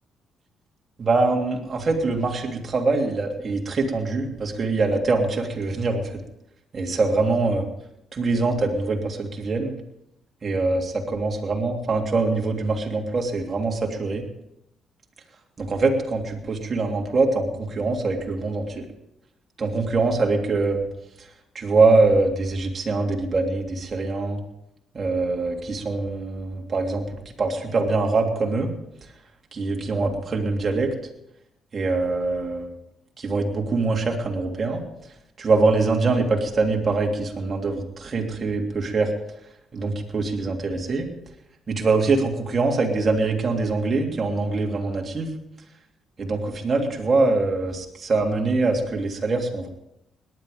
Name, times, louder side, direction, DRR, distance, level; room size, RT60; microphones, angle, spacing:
voice 1, 1.0-6.2 6.7-7.6 8.1-9.8 10.4-14.2 15.6-18.8 19.6-20.9 21.5-24.4 24.9-27.0 27.4-28.7 29.5-30.9 31.7-32.7 33.2-34.8 35.4-39.1 39.7-41.1 41.7-45.3 46.2-49.7, right 3 dB, 40° right, 1 dB, 3.1 m, -23 dB
18.0 x 11.0 x 5.3 m, 0.83 s
cardioid pair, 90°, 0 cm